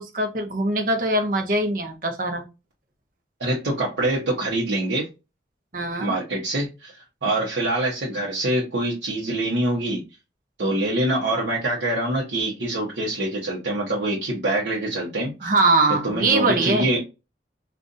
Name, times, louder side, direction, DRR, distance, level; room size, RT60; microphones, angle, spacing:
voice 1, 0.0-2.4 5.7-6.1 15.4-16.9, right 2 dB, 50° right, 0.7 m, -22 dB
voice 2, 3.4-5.1 6.0-6.9 7.2-10.0 10.6-15.5 16.0-17.0, right 1 dB, 80° right, 0.9 m, -25 dB
3.9 x 2.4 x 2.5 m
head